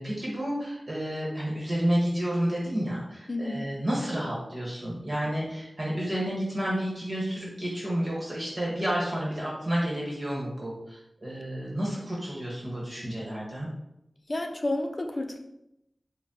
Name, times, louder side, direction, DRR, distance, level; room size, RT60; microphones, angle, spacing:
voice 1, 0.0-13.7, equal, 40° right, -5 dB, 1.3 m, -30 dB
voice 2, 3.3-3.8 14.3-15.4, left 1 dB, 45° left, 4 dB, 0.5 m, -31 dB
5.7 x 2.2 x 2.8 m, 0.84 s
cardioid pair, 45°, 0 cm